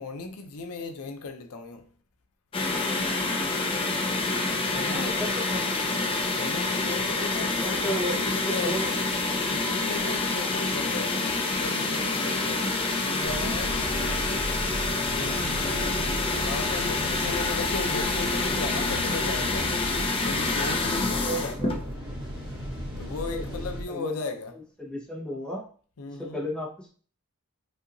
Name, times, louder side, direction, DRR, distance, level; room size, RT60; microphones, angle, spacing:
voice 1, 0.0-1.9 4.6-5.2 6.3-8.9 9.4-13.8 15.1-16.0 16.4-21.5 23.0-24.5 26.0-26.4, left 3 dB, 80° left, 0.6 m, -37 dB
sound 1, 2.5-21.9, left 3 dB, 25° left, 0.5 m, -27 dB
voice 2, 4.9-5.6 7.6-8.2 8.6-8.9 15.6-15.9 21.2-21.7 23.3-23.6 23.9-25.6 26.2-26.9, equal, 5° left, 1.0 m, -34 dB
sound 2, 10.0-16.7, left 1 dB, 60° left, 2.1 m, -43 dB
sound 3, 13.2-23.8, equal, 25° right, 1.3 m, -35 dB
5.4 x 2.8 x 2.6 m
head